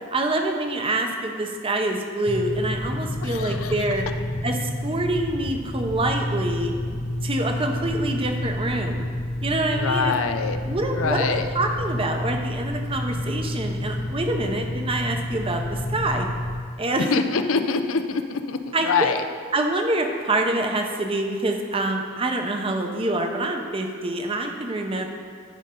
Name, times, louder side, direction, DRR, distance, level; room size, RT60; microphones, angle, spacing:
voice 1, 0.1-4.0 4.4-6.7 7.2-9.0 9.4-10.1 10.6-16.3 16.8-17.1 18.7-19.1 19.5-25.1, right 2 dB, 25° right, 3 dB, 0.8 m, -26 dB
sound 1, 2.3-16.6, left 1 dB, 30° left, 0.6 m, -29 dB
voice 2, 3.2-3.7 9.7-10.6 10.9-11.5 17.1-19.2, left 5 dB, 80° left, 9 dB, 0.5 m, -24 dB
12.5 x 5.3 x 3.8 m, 2.1 s
head